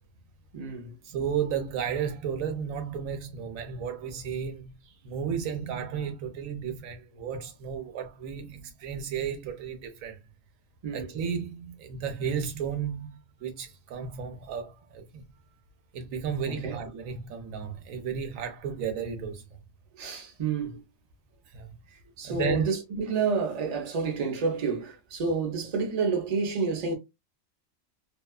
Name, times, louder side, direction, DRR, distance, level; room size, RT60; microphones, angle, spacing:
voice 1, 0.5-0.9 10.8-11.1 16.5-16.8 20.0-20.8 21.9-26.9, right 4 dB, 40° right, 0.6 m, -29 dB
voice 2, 1.0-10.2 10.9-15.2 15.9-19.6 21.5-21.8 22.2-22.7, right 7 dB, 90° right, 1.1 m, -33 dB
2.6 x 2.3 x 2.3 m
omnidirectional pair, 1.4 m